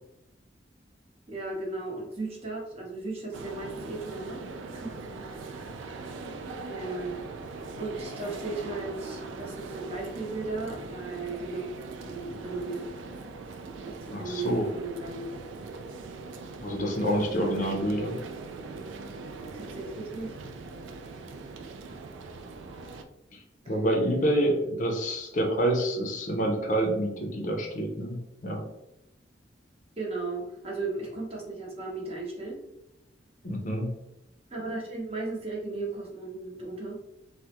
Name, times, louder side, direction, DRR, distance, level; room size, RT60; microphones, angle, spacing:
voice 1, 1.3-6.1 6.7-7.2 7.6-11.7 12.0-12.9 13.8-15.3 17.4-17.7 19.5-20.4 21.9-22.0 23.6-23.7 30.0-32.6 34.5-37.0, right 3 dB, 35° right, -3 dB, 0.9 m, -36 dB
sound 1, 3.3-23.0, right 3 dB, 85° right, 0.3 m, -41 dB
voice 2, 14.1-14.7 16.6-18.2 23.3-23.4 23.7-28.6 33.4-33.9, right 1 dB, 45° left, 1 dB, 0.5 m, -27 dB
3.4 x 2.1 x 2.9 m, 0.89 s
head